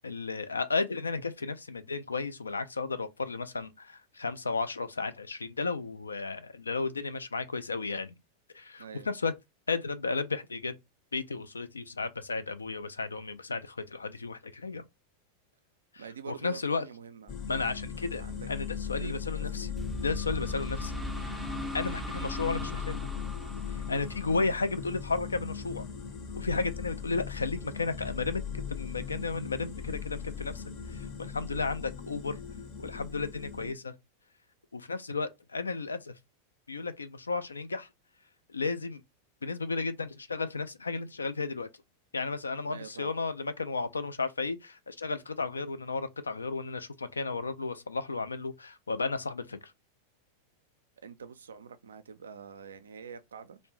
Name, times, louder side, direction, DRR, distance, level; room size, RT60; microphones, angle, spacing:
voice 1, 0.0-8.2 8.5-9.3 9.7-10.7 11.1-14.8 15.9-16.8 17.5-19.7 20.0-20.9 21.7-23.0 23.9-25.8 26.3-30.6 30.9-32.4 32.8-33.9 34.7-36.1 36.7-37.9 38.5-39.0 39.4-41.7 42.1-49.7, left 4 dB, 75° left, 0.3 m, -33 dB
voice 2, 8.8-9.1 16.0-17.4 18.2-18.5 18.8-19.7 42.7-43.2 51.0-53.6, right 6 dB, 70° right, 0.3 m, -46 dB
sound 1, 17.3-33.7, left 7 dB, 40° left, 0.7 m, -38 dB
sound 2, 19.8-25.4, right 1 dB, ahead, 0.4 m, -40 dB
2.5 x 2.1 x 2.9 m
figure-of-eight pair, 90°, 0 cm